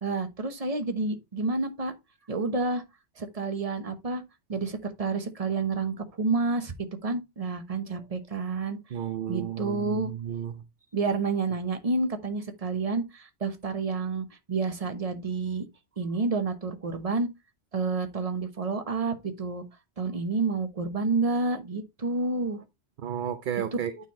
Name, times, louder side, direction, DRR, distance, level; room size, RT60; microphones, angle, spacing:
voice 1, 0.0-1.9 2.3-2.8 3.2-4.2 4.5-6.7 7.0-8.8 9.3-10.1 10.9-15.7 16.0-17.3 17.7-19.6 20.0-22.6, right 3 dB, 35° right, 1.0 m, -29 dB
voice 2, 8.9-10.6 23.0-23.9, right 9 dB, 55° right, 0.6 m, -32 dB
9.0 x 4.0 x 4.2 m
omnidirectional pair, 1.2 m